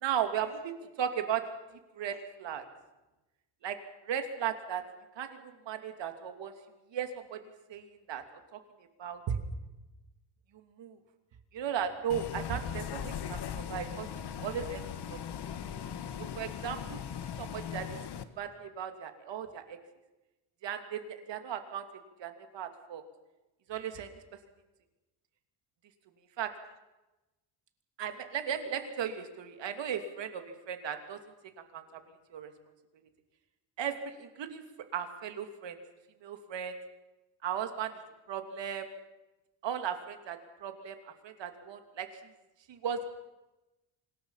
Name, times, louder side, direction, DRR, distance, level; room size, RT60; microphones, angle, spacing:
voice 1, 0.0-1.4 1.9-2.6 3.6-3.8 4.0-4.8 5.2-6.5 6.9-7.4 7.7-8.6 9.0-9.4 10.8-11.0 11.5-14.1 14.4-14.8 15.1-15.2 16.4-17.0 17.4-18.0 18.4-19.8 20.6-21.8 22.2-23.0 23.7-24.1 26.4-26.5 28.0-31.2 31.7-31.8 32.3-32.5 33.8-34.6 34.9-35.8 36.2-36.7 37.4-37.9 38.3-38.9 39.6-41.0 41.2-42.1 42.7-43.0, right 8 dB, 65° right, 7 dB, 2.9 m, -36 dB
Bus, 12.1-18.2, left 9 dB, 55° left, 1.7 m, -39 dB
25.5 x 20.5 x 5.8 m, 1.0 s
cardioid pair, 125°, 47 cm